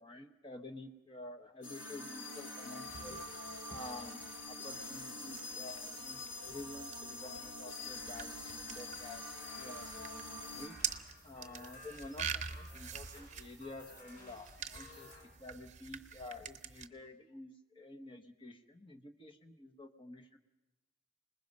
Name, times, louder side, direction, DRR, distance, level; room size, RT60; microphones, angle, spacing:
voice 1, 0.0-3.2 3.7-10.8 11.2-15.1 15.4-20.4, left 2 dB, 25° left, 4 dB, 1.1 m, -50 dB
sound 1, 1.6-10.7, left 2 dB, 70° left, 2.2 m, -45 dB
sound 2, 2.8-16.9, right 7 dB, 35° right, 0.8 m, -46 dB
sound 3, 9.4-15.2, left 2 dB, 40° left, 5.6 m, -56 dB
26.5 x 20.0 x 5.3 m, 1.0 s
head